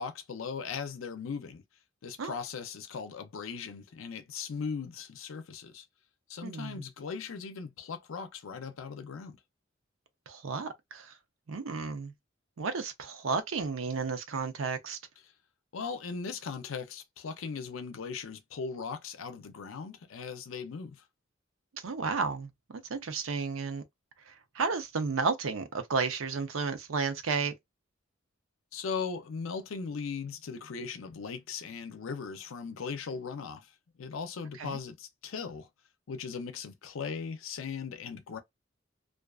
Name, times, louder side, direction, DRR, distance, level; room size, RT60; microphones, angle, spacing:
voice 1, 0.0-1.6 2.0-5.8 6.3-9.4 15.7-21.0 28.7-33.7 34.0-35.7 36.1-38.4, left 5 dB, 80° left, 0.5 m, -38 dB
voice 2, 6.4-6.8 10.3-11.1 11.5-12.1 12.6-15.0 21.8-23.8 24.3-27.5 34.6-34.8, right 4 dB, 85° right, 0.6 m, -32 dB
2.4 x 2.3 x 2.3 m
head